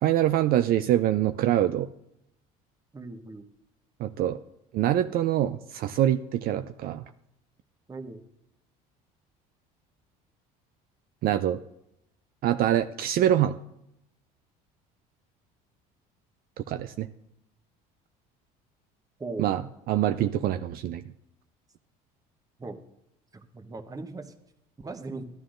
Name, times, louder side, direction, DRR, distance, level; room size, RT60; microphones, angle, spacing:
voice 1, 0.0-1.9 4.0-4.4 4.7-7.0 11.2-11.6 12.4-13.6 16.7-17.1 19.4-19.6 19.9-21.0, right 12 dB, 55° right, 11 dB, 0.4 m, -24 dB
voice 2, 2.9-3.5 7.9-8.2 19.2-19.5 22.6-22.8 23.3-24.3 24.8-25.2, right 3 dB, 20° right, 8 dB, 1.0 m, -38 dB
12.5 x 11.5 x 2.5 m, 0.81 s
supercardioid pair, 90°, 18 cm